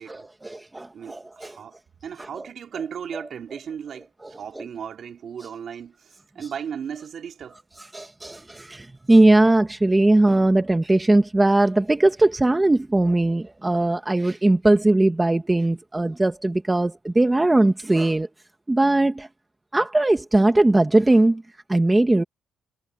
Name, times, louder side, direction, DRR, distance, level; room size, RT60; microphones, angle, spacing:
voice 1, 0.1-1.6 2.2-2.5 3.1-3.2 4.2-4.6 6.4-6.5 7.8-18.3 18.7-19.3 19.7-21.4 21.7-22.2, right 2 dB, 10° right, 1.0 m, -20 dB
voice 2, 0.9-1.7 2.0-4.1 4.4-7.6, right 8 dB, 45° right, 2.9 m, -36 dB
cardioid pair, 165°, 0 cm